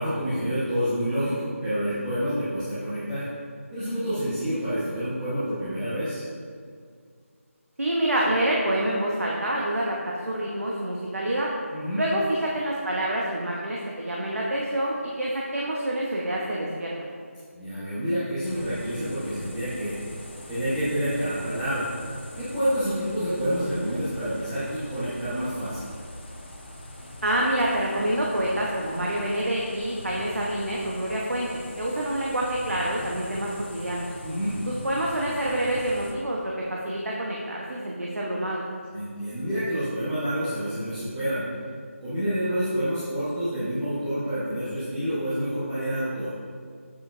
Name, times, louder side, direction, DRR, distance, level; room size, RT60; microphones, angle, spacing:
voice 1, 0.0-3.3 3.7-6.2 11.7-12.0 17.5-19.9 20.5-21.9 22.3-25.9 34.2-34.5 38.9-41.4 42.0-46.3, equal, 10° right, -15 dB, 1.2 m, -28 dB
voice 2, 7.8-11.5 11.9-17.1 27.2-34.1 34.7-38.6, right 1 dB, 70° right, -3 dB, 1.2 m, -27 dB
sound 1, 18.4-36.1, left 1 dB, 40° left, 1.3 m, -42 dB
8.5 x 7.1 x 2.7 m, 2.1 s
figure-of-eight pair, 170°, 8 cm